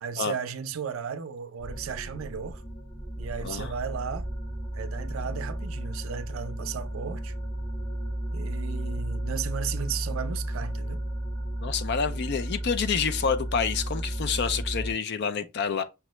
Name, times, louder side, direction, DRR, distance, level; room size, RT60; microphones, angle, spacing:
voice 1, 0.0-2.6 3.2-4.3 4.7-7.3 8.3-11.0, right 7 dB, 75° right, 0.4 m, -35 dB
sound 1, 1.6-14.9, right 1 dB, 15° left, 0.8 m, -33 dB
voice 2, 3.4-3.7 11.6-15.8, left 6 dB, 50° left, 0.4 m, -28 dB
5.7 x 2.1 x 3.0 m
head